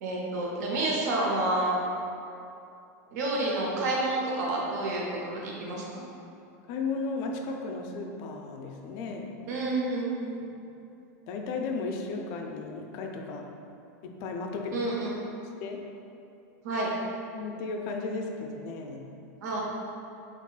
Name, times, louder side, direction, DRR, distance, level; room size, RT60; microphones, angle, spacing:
voice 1, 0.0-1.7 3.1-5.8 9.5-10.4 14.7-15.2 16.6-16.9 19.4-19.6, right 2 dB, 75° right, -3 dB, 0.7 m, -29 dB
voice 2, 6.7-9.3 11.3-13.5 14.0-14.8 15.6-15.8 17.3-19.0, left 3 dB, 45° left, 2 dB, 0.4 m, -34 dB
3.7 x 3.4 x 2.3 m, 2.7 s
supercardioid pair, 145°, 9 cm